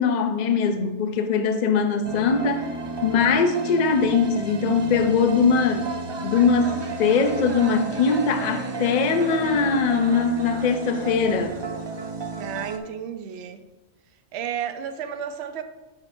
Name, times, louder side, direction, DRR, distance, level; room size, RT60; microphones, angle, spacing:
voice 1, 0.0-2.7 3.0-5.9 6.2-11.6, left 5 dB, 50° left, 8 dB, 0.5 m, -21 dB
sound 1, 2.0-12.8, right 3 dB, 35° right, 0.4 m, -32 dB
voice 2, 12.4-13.6 14.3-15.6, right 8 dB, 70° right, 8 dB, 0.8 m, -32 dB
9.7 x 5.7 x 2.6 m, 1.1 s
omnidirectional pair, 1.2 m